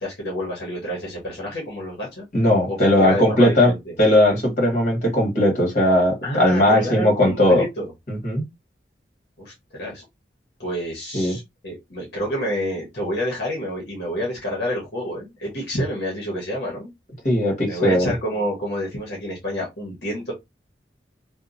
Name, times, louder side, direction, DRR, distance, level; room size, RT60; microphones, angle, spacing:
voice 1, 0.0-2.3 2.7-3.9 6.2-7.9 9.4-10.0 10.6-16.9 17.6-20.3, equal, 65° left, 1.0 m, -28 dB
voice 2, 2.3-3.7 4.0-7.6 8.1-8.4 11.1-11.4 17.2-18.1, left 1 dB, 45° left, 1.4 m, -18 dB
2.8 x 2.2 x 2.5 m
head